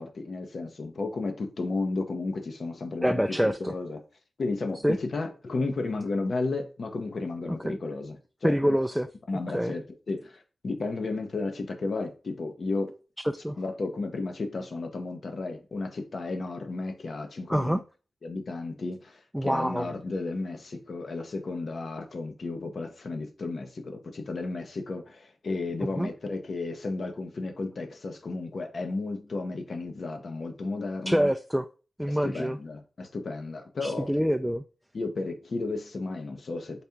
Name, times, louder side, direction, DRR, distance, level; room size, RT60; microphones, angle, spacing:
voice 1, 0.0-4.0 4.4-8.2 8.4-8.7 9.3-12.9 13.6-17.8 18.2-31.3 32.1-34.1 34.9-36.8, left 3 dB, 65° left, 0.8 m, -33 dB
voice 2, 3.0-3.7 4.8-5.0 7.5-7.8 8.4-9.1 9.5-9.7 13.4-13.6 17.5-17.8 19.3-19.9 26.0-26.1 31.1-31.6 32.0-32.6 33.8-34.6, equal, 5° right, 0.3 m, -26 dB
4.1 x 2.8 x 3.5 m
cardioid pair, 50°, 0 cm